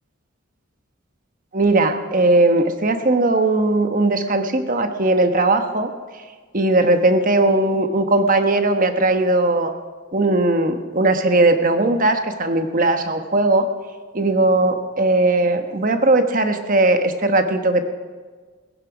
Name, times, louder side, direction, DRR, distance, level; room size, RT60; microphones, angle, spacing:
voice 1, 1.5-5.9 6.5-9.7 10.1-13.7 14.1-17.8, right 2 dB, 40° right, 7 dB, 1.2 m, -18 dB
21.0 x 10.5 x 5.2 m, 1.5 s
head